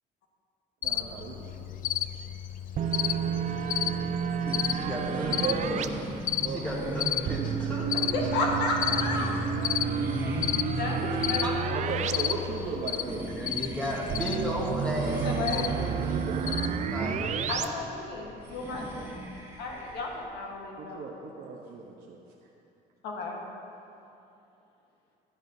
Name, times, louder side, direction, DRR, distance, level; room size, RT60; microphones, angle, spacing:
Cricket, 0.8-17.6, left 11 dB, 55° left, 0.4 m, -34 dB
voice 1, 0.8-1.9 5.4-6.0 6.4-7.1 8.2-8.4 11.0-11.1 11.7-13.5 15.9-16.6 17.0-17.1 20.8-22.2, right 4 dB, 70° right, -2 dB, 0.9 m, -36 dB
sound 1, 2.8-5.9 7.3-12.1 12.4-12.5 14.1-17.7, right 8 dB, 45° right, 0.4 m, -31 dB
sound 2, 4.4-20.2, right 1 dB, 15° right, 1.6 m, -39 dB
voice 2, 4.7-5.9 6.4-8.1 11.4-11.6 13.4-17.7, equal, 5° left, -4 dB, 1.3 m, -35 dB
voice 3, 8.1-9.4 10.8-11.4 15.1-15.9 17.5-19.2 19.6-21.2 23.0-23.4, left 3 dB, 85° left, -1 dB, 1.4 m, -33 dB
14.5 x 9.2 x 2.7 m, 2.8 s
cardioid pair, 110°, 17 cm